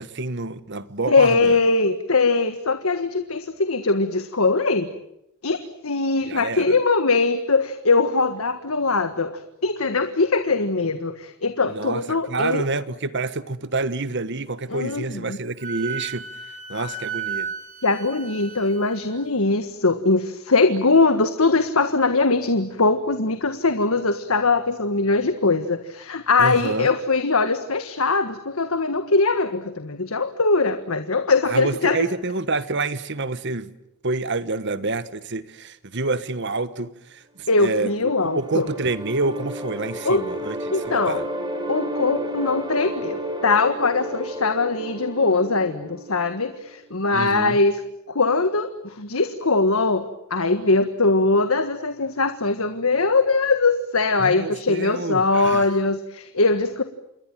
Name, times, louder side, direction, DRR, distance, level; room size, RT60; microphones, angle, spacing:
voice 1, 0.0-1.6 6.3-6.8 11.7-16.2 16.7-17.5 26.4-26.9 31.5-33.7 34.0-40.6 40.8-41.2 47.1-47.6 54.2-55.7, right 3 dB, 55° right, 1.4 m, -28 dB
voice 2, 1.1-4.9 5.4-12.6 14.7-15.4 17.8-32.0 37.5-38.7 40.0-40.2 40.7-41.2 41.7-47.8 48.1-56.8, left 3 dB, 75° left, 1.6 m, -21 dB
Wind instrument woodwind instrument, 15.6-19.1, right 5 dB, 40° right, 4.4 m, -33 dB
sound 1, 37.7-46.7, right 1 dB, 20° right, 5.3 m, -32 dB
28.0 x 21.5 x 9.2 m
head